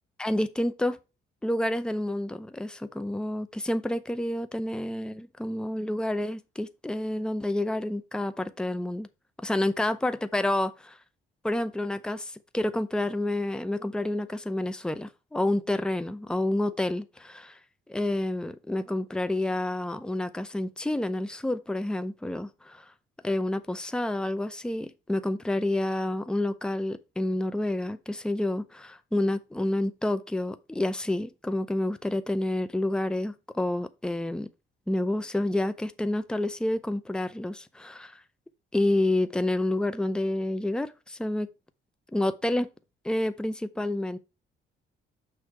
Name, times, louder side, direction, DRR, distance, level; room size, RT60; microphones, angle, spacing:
voice 1, 0.2-1.0 1.4-9.1 9.4-11.0 11.4-17.6 17.9-22.8 23.2-34.5 34.9-38.2 38.7-41.5 42.1-42.7 43.0-44.2, left 1 dB, 5° left, 0.6 m, -29 dB
6.4 x 3.3 x 5.9 m
cardioid pair, 90°, 20 cm